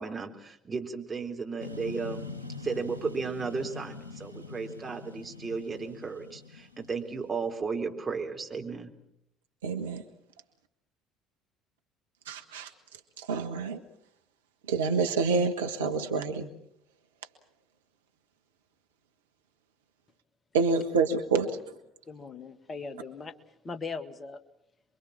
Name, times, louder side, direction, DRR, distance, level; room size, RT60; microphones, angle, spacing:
voice 1, 0.0-2.3 2.6-8.9, right 5 dB, 25° right, 3 dB, 3.8 m, -34 dB
sound 1, 1.6-7.7, left 4 dB, 85° left, 1.0 m, -43 dB
voice 2, 9.6-10.0 12.3-12.7 13.2-13.8 14.7-16.5 20.5-21.6, right 4 dB, 70° right, 6 dB, 1.4 m, -27 dB
voice 3, 22.1-23.3 23.6-24.4, left 4 dB, 25° left, 11 dB, 1.9 m, -39 dB
27.5 x 23.5 x 7.3 m, 0.75 s
figure-of-eight pair, 55°, 0 cm